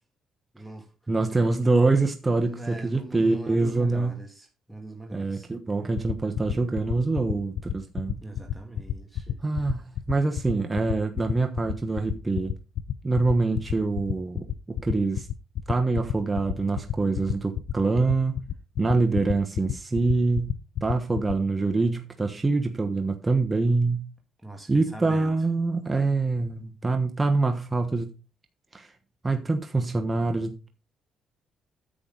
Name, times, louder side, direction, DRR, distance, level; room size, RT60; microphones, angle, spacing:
voice 1, 0.5-0.9 2.4-5.5 8.2-9.4 24.4-25.3, right 2 dB, 5° right, 1 dB, 2.0 m, -41 dB
voice 2, 1.1-4.1 5.1-8.2 9.4-12.5 13.0-15.3 15.7-18.3 18.8-20.5 20.8-24.0 24.7-28.1 28.7-28.9 29.2-30.7, right 3 dB, 20° right, 4 dB, 1.2 m, -25 dB
sound 1, 6.0-21.3, left 11 dB, 70° left, 0.5 m, -29 dB
10.0 x 7.9 x 4.0 m, 0.32 s
cardioid pair, 90°, 0 cm